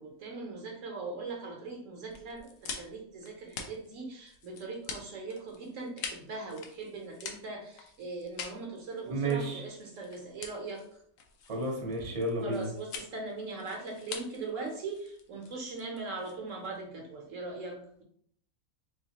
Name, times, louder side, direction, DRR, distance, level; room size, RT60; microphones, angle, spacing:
voice 1, 0.0-10.8 12.4-18.0, right 3 dB, 65° right, 1 dB, 1.1 m, -40 dB
sound 1, 2.1-16.8, left 5 dB, 70° left, 1.0 m, -45 dB
voice 2, 9.1-9.6 11.5-12.7, right 2 dB, 30° right, -1 dB, 0.8 m, -31 dB
3.6 x 3.1 x 2.8 m, 0.64 s
omnidirectional pair, 1.5 m